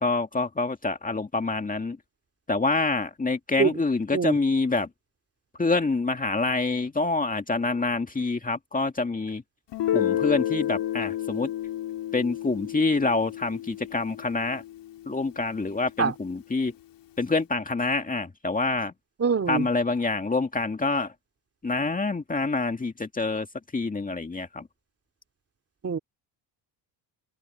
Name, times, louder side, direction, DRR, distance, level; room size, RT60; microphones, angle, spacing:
voice 1, 0.0-2.0 2.5-4.9 5.6-9.4 9.9-11.5 12.1-14.6 15.1-16.7 17.2-18.9 19.5-21.1 21.6-23.5 23.7-24.7, left 3 dB, 15° left, 2.2 m, -26 dB
Guitar, 9.7-15.2, left 11 dB, 60° left, 3.6 m, -30 dB
voice 2, 19.2-19.7 25.8-26.0, right 6 dB, 30° right, 2.7 m, -24 dB
cardioid pair, 110°, 47 cm